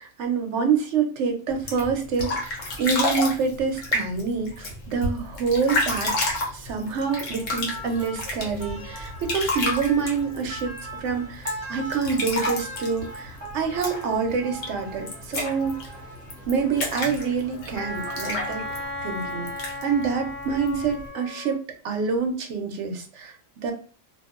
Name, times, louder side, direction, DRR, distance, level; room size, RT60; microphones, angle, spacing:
voice 1, 0.0-6.2 6.5-10.7 11.0-15.8 16.5-18.7 19.0-21.6 21.8-23.7, right 5 dB, 70° right, 4 dB, 0.9 m, -26 dB
sound 1, 1.5-21.1, left 2 dB, 80° left, 1.2 m, -31 dB
sound 2, 7.0-18.9, right 1 dB, 15° right, 1.1 m, -40 dB
Wind instrument woodwind instrument, 17.8-21.6, left 1 dB, 55° left, 0.9 m, -35 dB
2.7 x 2.5 x 2.4 m, 0.39 s
omnidirectional pair, 1.3 m